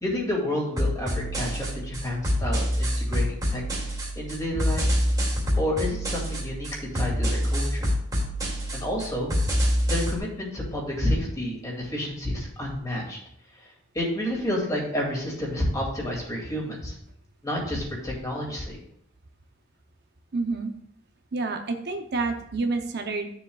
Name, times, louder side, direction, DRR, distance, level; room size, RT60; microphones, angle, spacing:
voice 1, 0.0-3.6 4.2-4.8 5.6-6.7 6.9-7.9 8.7-9.4 9.9-13.2 13.9-16.9 17.4-18.8, left 1 dB, 20° left, -2 dB, 2.4 m, -29 dB
sound 1, 0.8-10.2, equal, 20° right, 2.3 m, -26 dB
voice 2, 20.3-20.7 21.3-23.3, right 3 dB, 55° right, 4 dB, 0.7 m, -28 dB
12.0 x 7.1 x 2.4 m, 0.72 s
head